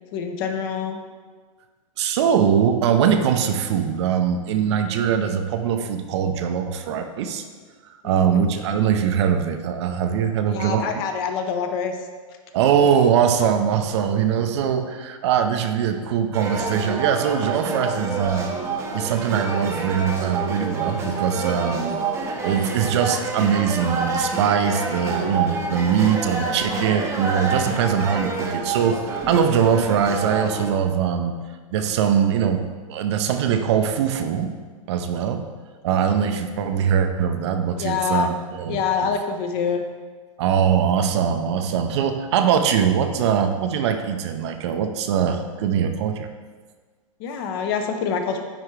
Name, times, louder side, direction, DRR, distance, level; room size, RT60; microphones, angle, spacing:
voice 1, 0.1-1.0 8.0-8.4 10.5-12.0 36.1-36.3 37.7-38.3 38.7-39.8 47.2-48.4, left 6 dB, 40° left, 5 dB, 0.7 m, -26 dB
voice 2, 2.0-7.5 8.0-10.8 12.5-18.5 18.9-22.0 22.4-31.4 31.7-34.6 34.9-35.5 35.8-39.1 40.4-46.3, right 8 dB, 50° right, 7 dB, 0.5 m, -22 dB
sound 1, 16.3-30.7, right 3 dB, 15° right, 0.7 m, -28 dB
9.7 x 3.4 x 3.2 m, 1.5 s
hypercardioid pair, 140°, 18 cm